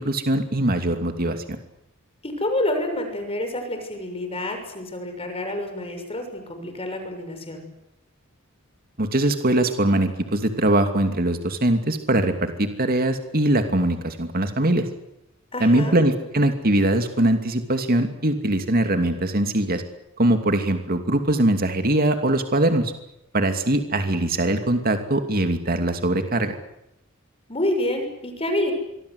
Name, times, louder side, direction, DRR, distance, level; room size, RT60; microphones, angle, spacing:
voice 1, 0.0-1.4 9.0-14.8 15.6-19.8 20.2-22.9 23.3-26.6, right 1 dB, 45° right, 7 dB, 2.7 m, -21 dB
voice 2, 2.2-7.7 15.5-16.0 27.5-28.7, left 1 dB, 30° left, 6 dB, 6.5 m, -28 dB
26.0 x 23.0 x 8.3 m, 0.85 s
head